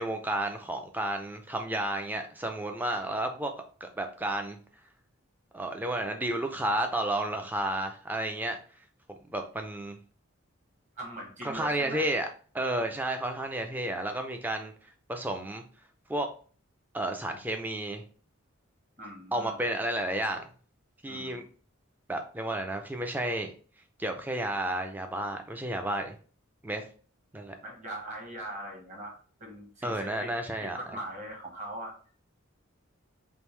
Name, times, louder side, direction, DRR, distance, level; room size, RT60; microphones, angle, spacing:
voice 1, 0.0-3.5 3.8-4.6 5.5-8.6 9.3-10.0 11.4-12.3 12.5-14.7 15.1-15.6 16.1-16.3 16.9-18.0 19.3-20.4 21.0-21.4 22.1-23.5 24.0-26.2 26.6-26.8 27.3-27.6 29.8-30.8, right 1 dB, 10° right, 5 dB, 0.4 m, -31 dB
voice 2, 11.0-12.1 19.0-19.6 21.1-21.4 27.6-30.3 30.6-31.9, right 1 dB, 35° right, -1 dB, 1.2 m, -41 dB
3.5 x 2.6 x 3.1 m, 0.41 s
head